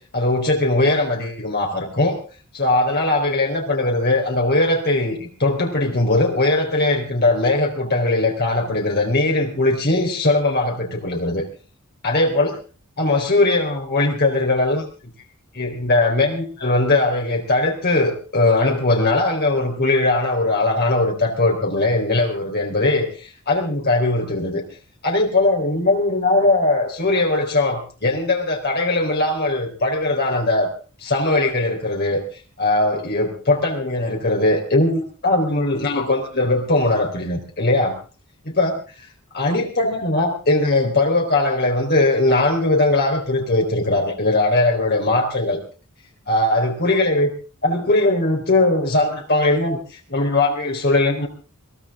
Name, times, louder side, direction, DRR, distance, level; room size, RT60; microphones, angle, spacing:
voice 1, 0.1-2.1 2.5-11.5 12.0-12.5 13.0-14.8 15.5-24.6 25.0-30.7 31.0-32.2 32.6-38.0 38.5-38.7 39.3-45.6 46.3-47.3 47.6-49.8 50.1-51.3, left 2 dB, 45° left, 1 dB, 4.0 m, -20 dB
22.5 x 16.5 x 3.7 m, 0.37 s
head